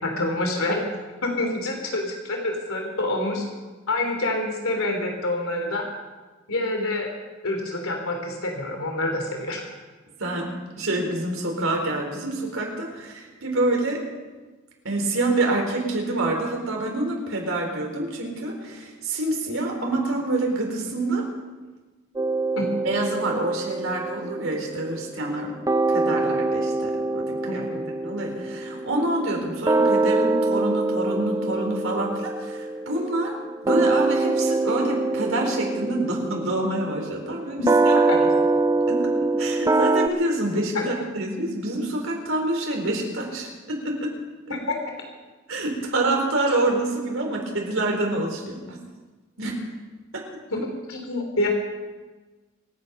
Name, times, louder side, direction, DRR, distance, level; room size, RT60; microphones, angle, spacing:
voice 1, 0.0-0.9 1.2-3.4 3.9-5.9 6.5-7.1 7.4-9.6 22.6-22.7 27.4-27.8 37.9-38.2 40.7-40.9 50.9-51.5, left 2 dB, 85° left, 2 dB, 3.1 m, -27 dB
voice 2, 10.8-14.0 14.8-21.2 22.8-25.6 25.9-27.2 27.5-27.6 28.0-33.4 33.6-38.3 38.9-39.1 39.4-44.1 44.5-44.6 45.5-48.8 49.4-49.6 50.1-50.2 50.5-50.6, right 2 dB, 75° right, 1 dB, 4.2 m, -27 dB
sound 1, 22.2-25.4 25.7-40.1, right 3 dB, 15° right, 0.5 m, -24 dB
26.5 x 9.3 x 5.4 m, 1.3 s
head